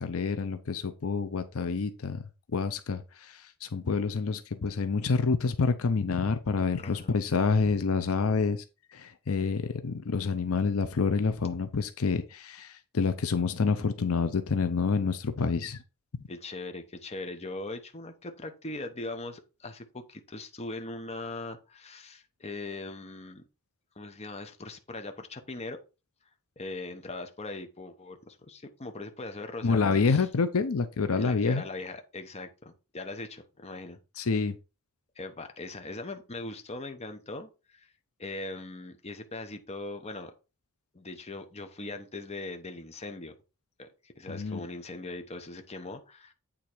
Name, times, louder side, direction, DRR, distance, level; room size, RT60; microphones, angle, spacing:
voice 1, 0.0-8.6 8.9-15.8 29.6-31.6 34.2-34.6 44.3-44.6, left 4 dB, 70° left, 0.6 m, -28 dB
voice 2, 6.8-7.2 16.3-23.4 24.0-25.8 26.6-30.3 31.2-34.0 35.2-37.9 38.2-40.3 40.9-43.3 43.8-46.3, left 2 dB, 30° left, 0.9 m, -40 dB
8.6 x 3.7 x 4.5 m
head